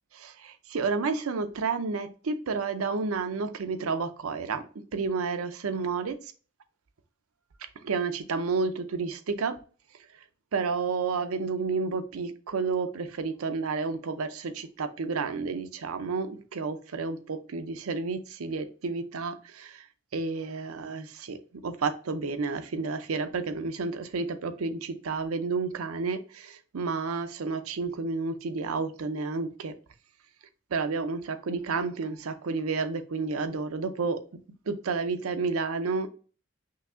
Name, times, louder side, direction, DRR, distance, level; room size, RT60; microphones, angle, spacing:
voice 1, 0.1-6.2 7.8-9.6 10.5-19.8 20.1-21.4 21.6-29.7 30.7-34.2 34.7-36.1, right 4 dB, 90° right, 9 dB, 0.5 m, -31 dB
5.7 x 2.7 x 2.4 m, 0.39 s
head